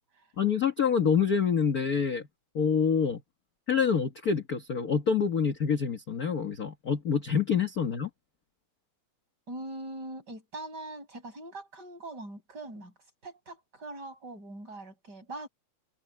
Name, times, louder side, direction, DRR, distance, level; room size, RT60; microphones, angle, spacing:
voice 1, 0.4-2.3 2.5-3.2 3.7-8.1, left 6 dB, 45° left, 1.3 m, -26 dB
voice 2, 9.5-12.9 13.2-15.5, right 2 dB, 30° right, 8.6 m, -42 dB
omnidirectional pair, 3.4 m